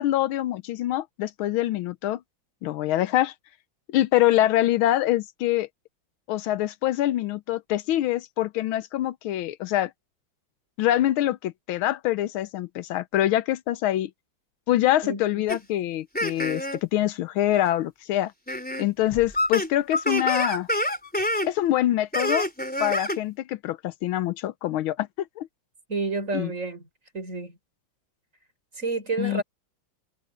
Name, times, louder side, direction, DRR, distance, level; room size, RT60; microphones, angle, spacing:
voice 1, 0.0-2.2 2.6-3.3 3.9-5.7 6.3-9.9 10.8-14.1 14.7-18.3 18.8-20.7 21.4-22.5 22.8-25.1 25.4-25.5 26.3-26.5 29.2-29.4, left 13 dB, 80° left, 1.5 m, -25 dB
sound 1, 15.5-15.6 16.1-16.8 17.5-17.6 18.5-18.9 19.1-21.5 22.1-23.2, left 1 dB, 5° left, 3.6 m, -27 dB
voice 2, 25.9-26.8 27.1-27.6 28.8-29.4, right 3 dB, 35° right, 5.6 m, -29 dB
omnidirectional pair, 2.3 m